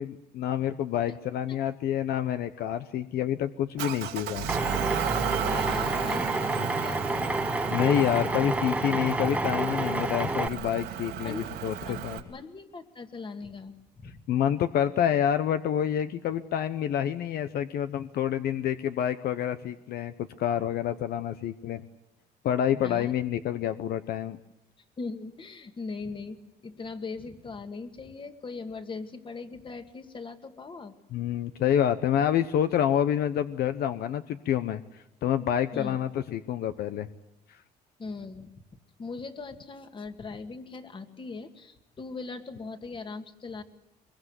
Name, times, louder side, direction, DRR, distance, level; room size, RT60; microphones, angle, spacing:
voice 1, 0.0-4.5 6.6-6.7 7.7-12.2 14.3-21.9 22.4-24.4 31.1-37.1, left 10 dB, 70° left, 10 dB, 1.0 m, -28 dB
Motor vehicle (road) / Engine, 3.8-12.2, right 11 dB, 80° right, 2.4 m, -34 dB
Drill, 4.5-10.5, right 2 dB, 10° right, 0.9 m, -29 dB
voice 2, 5.4-7.3 11.2-14.2 22.8-23.2 25.0-30.9 35.7-36.0 38.0-38.5 39.0-43.6, left 4 dB, 30° left, 8 dB, 2.0 m, -40 dB
23.0 x 22.0 x 8.2 m, 0.87 s
cardioid pair, 110°, 17 cm